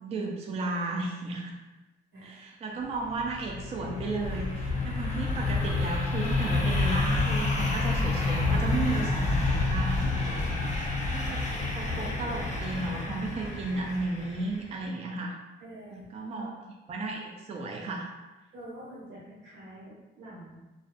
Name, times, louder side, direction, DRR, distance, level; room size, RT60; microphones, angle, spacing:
voice 1, 0.0-1.5 2.2-10.4 11.1-11.4 11.7-15.3 15.9-16.6 16.9-18.1, right 3 dB, 30° right, 0 dB, 0.3 m, -34 dB
voice 2, 2.1-2.4 15.6-16.5 18.5-20.6, right 1 dB, 85° right, -7 dB, 1.1 m, -46 dB
sound 1, 3.0-14.6, left 3 dB, 35° left, 0.6 m, -29 dB
2.2 x 2.1 x 2.5 m, 1.1 s
cardioid pair, 90°, 20 cm